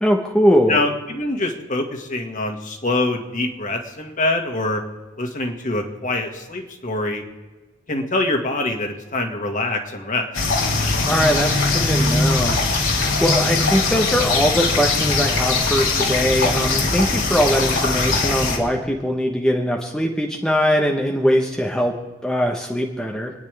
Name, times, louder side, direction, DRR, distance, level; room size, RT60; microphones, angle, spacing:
voice 1, 0.0-0.8 11.1-12.6 13.2-21.9 22.2-23.3, equal, 5° left, 0 dB, 1.1 m, -21 dB
voice 2, 0.7-4.8 5.2-7.2 7.9-10.3, left 2 dB, 40° left, 3 dB, 2.0 m, -24 dB
sound 1, 10.3-18.6, left 3 dB, 80° left, 3.5 m, -20 dB
28.0 x 10.0 x 3.5 m, 1.3 s
head